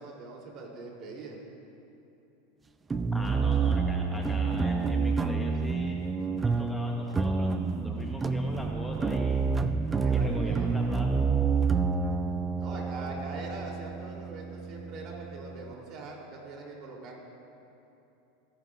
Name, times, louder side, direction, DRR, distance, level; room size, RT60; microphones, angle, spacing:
voice 1, 0.0-1.4 10.0-10.7 12.6-17.2, right 2 dB, 50° right, -1 dB, 2.9 m, -42 dB
sound 1, 2.9-15.7, right 4 dB, 15° right, 0.5 m, -28 dB
voice 2, 3.1-6.0 6.4-9.5 10.1-11.3, left 1 dB, 5° left, 0 dB, 1.0 m, -41 dB
25.5 x 10.5 x 2.4 m, 2.9 s
hypercardioid pair, 110°, 0 cm